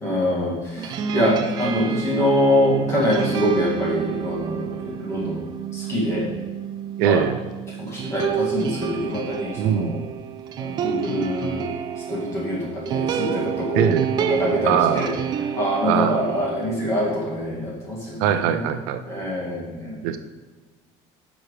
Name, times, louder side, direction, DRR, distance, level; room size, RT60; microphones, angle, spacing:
voice 1, 0.0-5.4 5.7-6.3 7.0-7.2 7.8-10.0 10.6-11.7 12.1-15.1 15.5-18.6 19.1-20.0, equal, 20° left, -4 dB, 2.2 m, -24 dB
sound 1, 0.8-16.8, right 8 dB, 30° right, 0.4 m, -29 dB
voice 2, 7.0-7.4 9.6-10.0 13.7-14.1 14.7-15.1 15.8-16.3 18.2-19.0 20.0-20.2, right 9 dB, 75° right, 9 dB, 0.6 m, -21 dB
9.9 x 6.1 x 3.3 m, 1.2 s
cardioid pair, 175°, 14 cm